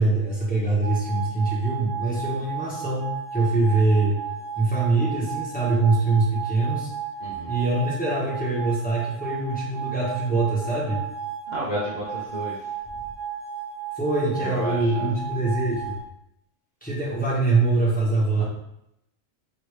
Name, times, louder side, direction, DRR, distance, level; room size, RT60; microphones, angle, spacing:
voice 1, 0.0-4.2 4.6-6.9 7.5-11.0 14.0-16.0 16.8-18.4, right 3 dB, 5° left, -7 dB, 1.2 m, -23 dB
sound 1, 0.8-16.0, right 8 dB, 10° right, 0.5 m, -34 dB
voice 2, 7.2-7.5 11.5-12.7 14.4-15.2 18.4-18.5, equal, 40° right, -7 dB, 0.8 m, -32 dB
5.2 x 2.7 x 3.2 m, 0.79 s
omnidirectional pair, 1.4 m